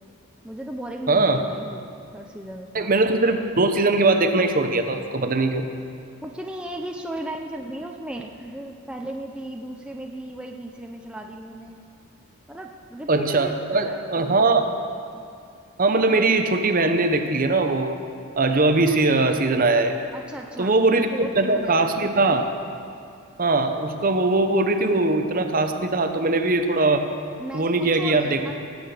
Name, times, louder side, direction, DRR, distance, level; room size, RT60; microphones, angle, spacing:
voice 1, 0.4-2.9 6.2-11.8 12.5-14.3 20.1-20.8 21.1-22.2 27.4-28.5, right 1 dB, 5° right, 1 dB, 0.6 m, -36 dB
voice 2, 1.1-1.4 2.7-5.7 13.1-14.7 15.8-18.0 18.4-20.0 20.6-21.1 21.4-22.5 23.4-27.1 27.5-28.4, right 2 dB, 40° right, 6 dB, 0.8 m, -21 dB
19.0 x 7.8 x 6.6 m, 2.4 s
head